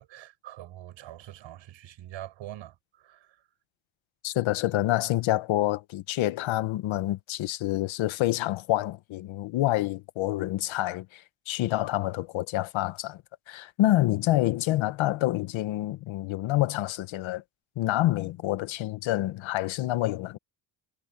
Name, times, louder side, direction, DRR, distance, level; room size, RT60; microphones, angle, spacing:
voice 1, 0.0-3.4, right 13 dB, 75° right, 5.3 m, -44 dB
voice 2, 4.2-13.2 13.5-17.4 17.8-20.4, left 15 dB, 75° left, 1.2 m, -27 dB
cardioid pair, 130°, 47 cm